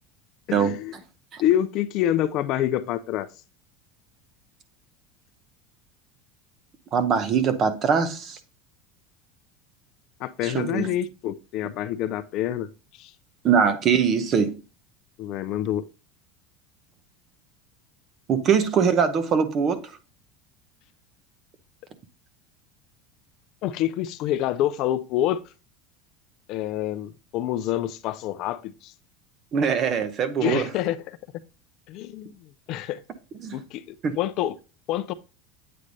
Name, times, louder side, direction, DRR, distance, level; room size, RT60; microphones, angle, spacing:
voice 1, 0.5-0.9 1.4-3.3 10.2-13.1 15.2-15.9 23.6-25.4 26.5-28.9 30.4-31.2 31.9-33.0 33.5-34.6 34.9-35.1, left 12 dB, 45° left, 0.4 m, -27 dB
voice 2, 6.9-8.4 10.4-10.9 13.4-14.6 18.3-19.8 29.5-30.7 33.4-33.6 34.0-34.2, right 6 dB, 30° right, 0.8 m, -22 dB
8.5 x 3.3 x 3.9 m
supercardioid pair, 160°, 0 cm